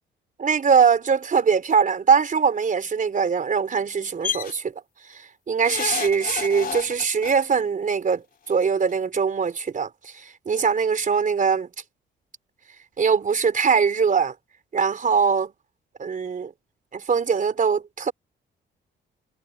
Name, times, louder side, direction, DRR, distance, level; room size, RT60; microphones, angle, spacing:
voice 1, 0.4-4.7 5.5-11.7 13.0-14.3 14.7-15.5 16.0-16.5 16.9-18.1, right 6 dB, 40° right, 4.2 m, -22 dB
sound 1, 4.2-4.5 5.6-7.3 8.5-8.6 8.9-9.0, left 7 dB, 45° left, 3.6 m, -30 dB
cardioid pair, 90°, 20 cm